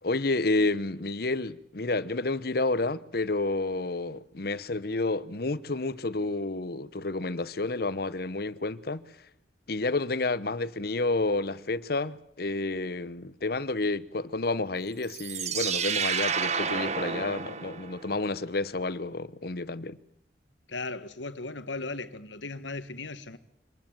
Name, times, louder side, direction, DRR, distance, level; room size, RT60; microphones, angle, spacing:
voice 1, 0.0-9.1 9.7-20.0, left 2 dB, 55° left, 1.0 m, -30 dB
sound 1, 15.0-18.2, right 6 dB, 40° right, 1.0 m, -30 dB
voice 2, 20.7-23.4, left 3 dB, 80° left, 1.6 m, -37 dB
25.0 x 20.0 x 8.9 m
head